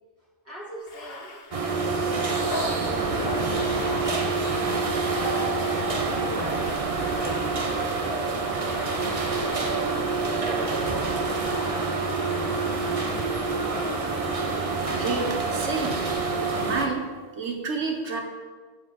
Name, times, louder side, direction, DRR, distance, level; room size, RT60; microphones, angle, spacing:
voice 1, 0.4-3.7 4.6-7.2 7.7-11.0, right 1 dB, 10° right, -7 dB, 2.5 m, -42 dB
Bathtub (filling or washing), 0.8-8.1 8.7-10.0 10.5-13.7 14.9-15.8, left 3 dB, 60° left, 1.1 m, -41 dB
sound 1, 1.5-16.9, right 3 dB, 35° right, 0.8 m, -27 dB
sound 2, 4.9-12.2, right 5 dB, 60° right, 1.0 m, -39 dB
voice 2, 14.9-16.0 16.6-17.1 17.4-18.2, right 4 dB, 80° right, 2 dB, 1.6 m, -29 dB
14.5 x 5.0 x 4.4 m, 1.5 s
omnidirectional pair, 1.2 m